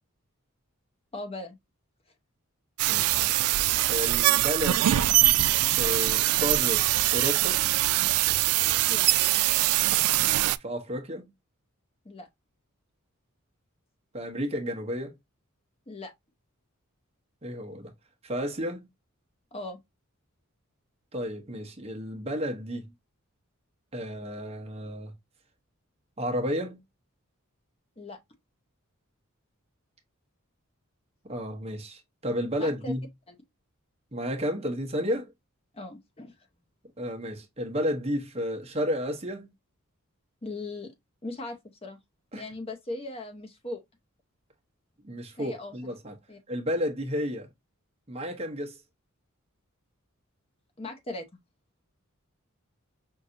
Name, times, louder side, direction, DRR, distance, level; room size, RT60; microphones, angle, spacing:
voice 1, 1.1-1.6 8.9-9.1 12.0-12.3 15.9-16.1 19.5-19.8 28.0-28.2 32.6-32.9 33.3-33.4 35.7-36.3 40.4-40.9 41.2-42.0 42.3-43.8 45.4-45.8 46.3-46.4 50.8-51.3, left 2 dB, 25° left, 0.8 m, -38 dB
sound 1, 2.8-10.6, right 16 dB, 85° right, 0.3 m, -23 dB
voice 2, 2.9-3.2 3.9-5.1 5.6-6.9 7.1-7.7 10.6-11.3 14.1-15.1 17.4-17.9 18.2-18.9 21.1-22.9 23.9-25.1 26.2-26.8 31.2-33.0 34.1-35.3 37.0-39.5 42.3-42.5 45.0-46.1 46.5-47.5 48.1-48.8, equal, 30° right, 0.9 m, -32 dB
5.5 x 2.6 x 2.6 m
head